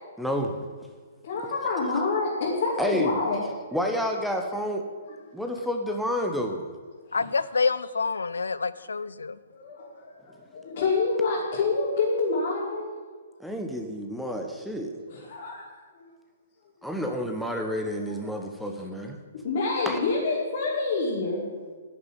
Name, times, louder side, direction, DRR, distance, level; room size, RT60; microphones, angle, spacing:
voice 1, 0.2-0.7 2.8-3.2 3.7-4.9 5.3-6.7 13.4-15.0 16.8-19.2 19.8-20.0, equal, ahead, 3 dB, 1.0 m, -29 dB
voice 2, 1.2-3.4 5.0-5.1 7.1-7.6 8.7-8.8 9.5-12.9 15.1-15.7 15.9-16.1 16.8-16.9 19.4-21.4, left 3 dB, 55° left, -5 dB, 2.8 m, -27 dB
voice 3, 7.1-9.4, left 4 dB, 75° left, 17 dB, 0.4 m, -27 dB
10.5 x 6.8 x 9.4 m, 1.5 s
figure-of-eight pair, 120°, 0 cm